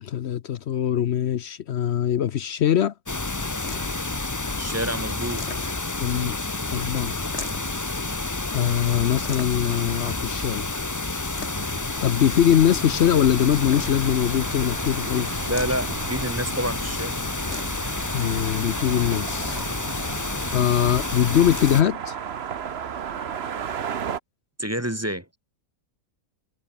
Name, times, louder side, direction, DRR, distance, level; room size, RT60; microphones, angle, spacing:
voice 1, 0.0-2.9 6.0-6.4 6.7-7.2 8.5-10.7 12.0-15.4 18.1-19.6 20.5-22.2, left 10 dB, 60° left, 0.7 m, -22 dB
sound 1, 3.1-21.8, left 2 dB, 20° left, 0.6 m, -29 dB
sound 2, 3.5-4.1 5.1-6.0 7.2-7.8 9.2-9.8 11.1-11.9 13.5-14.3 15.4-16.1 17.4-18.0 19.3-20.0 21.4-21.9, left 4 dB, 40° left, 2.6 m, -40 dB
voice 2, 4.5-5.4 15.5-17.2 24.6-25.2, right 1 dB, 10° right, 1.2 m, -28 dB
sound 3, 11.4-24.2, right 8 dB, 45° right, 1.0 m, -36 dB
omnidirectional pair, 1.7 m